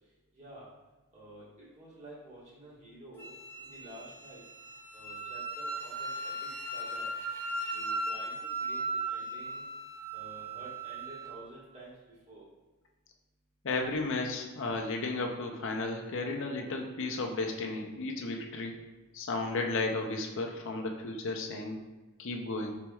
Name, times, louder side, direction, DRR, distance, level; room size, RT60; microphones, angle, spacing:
voice 1, 0.3-0.7 1.1-3.3 3.6-4.4 4.9-7.1 7.6-9.6 10.1-11.9 12.3-12.4, right 1 dB, 30° right, -7 dB, 1.5 m, -50 dB
Wind instrument woodwind instrument, 3.2-11.4, right 2 dB, 10° left, 0.6 m, -37 dB
voice 2, 13.6-18.7 19.1-21.8 22.2-22.7, left 3 dB, 60° left, 2 dB, 0.6 m, -34 dB
4.5 x 4.2 x 2.3 m, 1.2 s
head